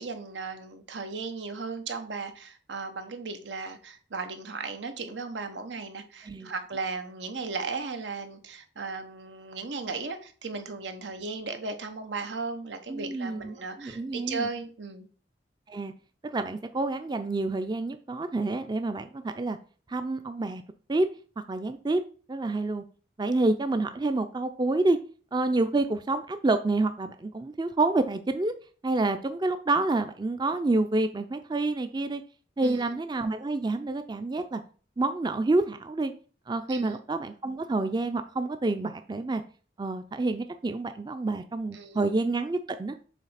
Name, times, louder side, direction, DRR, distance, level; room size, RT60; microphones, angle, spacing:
voice 1, 0.0-15.1 32.6-32.9 36.7-37.0 41.7-42.1, right 4 dB, 90° right, 1.1 m, -36 dB
voice 2, 12.9-14.5 15.7-15.9 16.2-19.6 19.9-20.6 20.9-21.1 21.5-22.0 22.3-22.8 23.2-25.0 25.3-28.5 28.8-32.2 32.6-34.6 35.0-36.1 36.5-39.4 39.8-43.0, right 2 dB, 25° right, 0.4 m, -28 dB
7.3 x 3.3 x 5.7 m
head